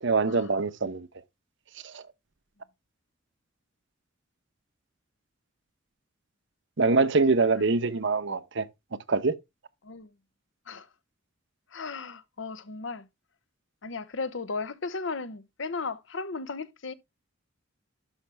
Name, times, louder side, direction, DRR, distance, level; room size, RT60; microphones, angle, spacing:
voice 1, 0.0-1.1 1.8-2.0 6.8-8.7 9.1-9.4, right 3 dB, 65° right, 0.9 m, -24 dB
voice 2, 11.7-13.1 13.8-16.9, left 4 dB, 65° left, 0.9 m, -35 dB
12.0 x 5.8 x 3.4 m
head